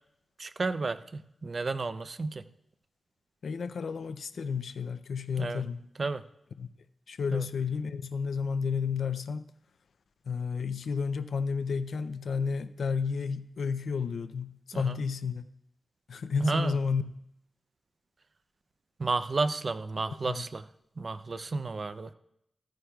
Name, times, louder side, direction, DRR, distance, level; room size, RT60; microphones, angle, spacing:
voice 1, 0.4-2.4 5.4-5.6 6.0-6.2 7.3-7.4 14.7-15.0 16.4-16.7 19.0-20.6 21.0-22.1, right 3 dB, 45° right, 0.5 m, -32 dB
voice 2, 3.4-5.8 6.6-6.7 7.1-9.4 10.3-15.5 16.1-17.0 20.1-20.5, left 5 dB, 80° left, 0.4 m, -32 dB
14.0 x 14.0 x 2.3 m
wide cardioid pair, 100°, 0 cm